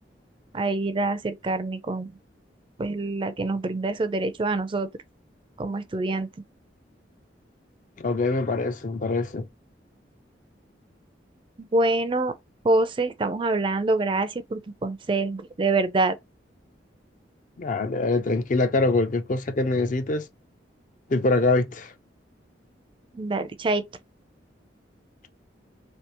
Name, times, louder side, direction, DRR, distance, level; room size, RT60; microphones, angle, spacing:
voice 1, 0.5-2.1 2.8-4.9 5.6-6.3 11.6-12.3 12.6-16.1 23.1-23.8, right 2 dB, 30° right, 0.4 m, -25 dB
voice 2, 8.0-9.5 17.6-20.3 21.1-21.9, left 3 dB, 45° left, 0.5 m, -24 dB
3.3 x 2.8 x 2.9 m
head